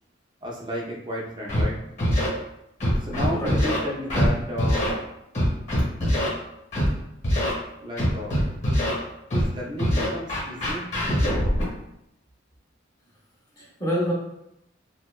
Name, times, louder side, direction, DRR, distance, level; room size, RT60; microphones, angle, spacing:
voice 1, 0.4-1.8 3.0-4.9 7.8-8.4 9.3-11.6, equal, 25° right, -2 dB, 0.4 m, -33 dB
Scratching (performance technique), 1.5-1.6 2.0-2.3 2.8-3.8 4.1-4.3 4.6-4.9 5.3-6.3 6.7-6.9 7.2-7.5 8.0-8.9 9.3-9.5 9.8-11.6, equal, 35° left, 0.9 m, -23 dB
voice 2, 3.1-3.6 13.6-14.1, equal, 15° left, -5 dB, 0.6 m, -27 dB
2.7 x 2.0 x 2.3 m, 0.82 s
head